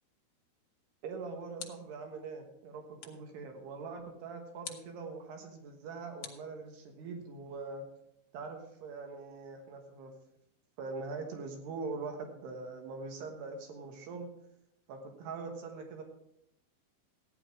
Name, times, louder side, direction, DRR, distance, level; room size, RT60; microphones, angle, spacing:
sound 1, 0.9-2.1 3.0-3.4 4.6-5.0 6.2-7.1, left 8 dB, 80° left, 1.3 m, -48 dB
voice 1, 1.0-7.8 8.3-10.1 10.8-14.3 14.9-16.0, right 4 dB, 75° right, 4 dB, 3.5 m, -42 dB
15.0 x 9.8 x 4.8 m, 0.77 s
omnidirectional pair, 4.8 m